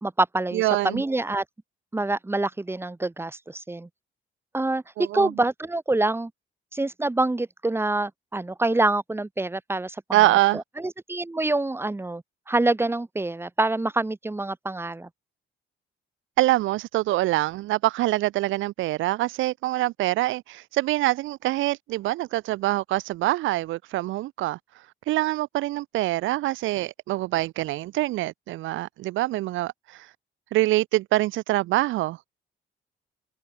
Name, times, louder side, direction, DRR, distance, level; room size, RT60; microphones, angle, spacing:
voice 1, 0.0-1.4 1.9-3.9 4.5-4.8 5.1-6.3 6.7-15.1, right 2 dB, 10° right, 1.0 m, -26 dB
voice 2, 0.5-1.0 5.0-5.3 10.1-10.6 16.4-30.1 30.5-32.4, right 17 dB, 80° right, 0.5 m, -25 dB
cardioid pair, 90°, 20 cm